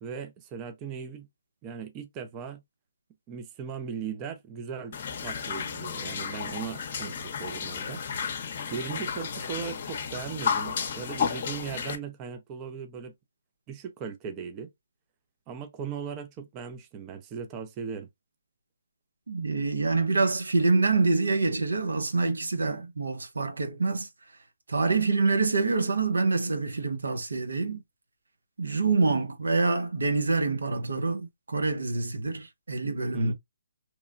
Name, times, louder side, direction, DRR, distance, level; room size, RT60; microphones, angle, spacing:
voice 1, 0.0-1.3 1.6-2.6 3.3-8.0 8.7-13.1 13.7-14.7 15.5-18.1 33.1-33.3, right 6 dB, 25° right, 0.4 m, -38 dB
sound 1, 4.9-12.0, left 6 dB, 50° left, 0.6 m, -33 dB
voice 2, 19.3-24.1 24.7-27.8 28.6-33.3, right 3 dB, 85° right, 0.7 m, -26 dB
3.0 x 2.1 x 2.4 m
hypercardioid pair, 145°, 0 cm